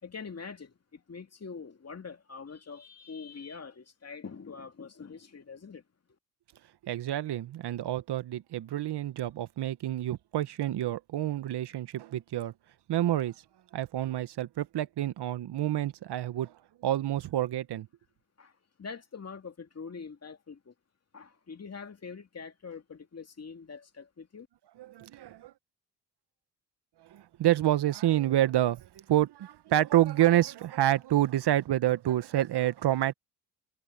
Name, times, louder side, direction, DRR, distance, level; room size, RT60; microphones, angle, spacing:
voice 1, 0.0-5.8 18.4-18.5 18.8-20.7 21.1-24.5, left 5 dB, 35° left, 2.6 m, -44 dB
voice 2, 6.8-12.5 12.9-13.3 13.7-16.5 16.8-17.9 24.8-25.5 27.0-33.1, right 13 dB, 60° right, 1.4 m, -28 dB
supercardioid pair, 55°, 45 cm